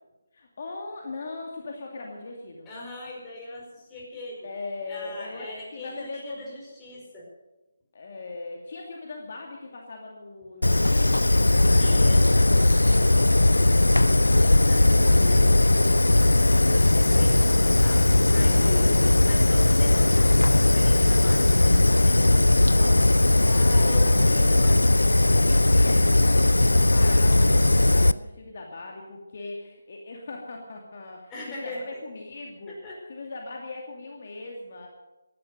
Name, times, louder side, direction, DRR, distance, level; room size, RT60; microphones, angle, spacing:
voice 1, 0.3-2.7 4.4-6.7 7.9-11.4 18.3-19.2 23.4-24.2 25.4-32.8 33.1-34.9, left 3 dB, 50° left, 0 dB, 2.4 m, -39 dB
voice 2, 2.6-4.5 4.9-7.3 11.7-12.3 14.3-23.1 23.5-24.8 31.3-31.8 32.7-33.0, left 2 dB, 15° left, -3 dB, 5.2 m, -40 dB
Fire, 10.6-28.1, left 2 dB, 85° left, 0.5 m, -18 dB
16.5 x 11.5 x 6.6 m, 1.0 s
figure-of-eight pair, 155°, 0 cm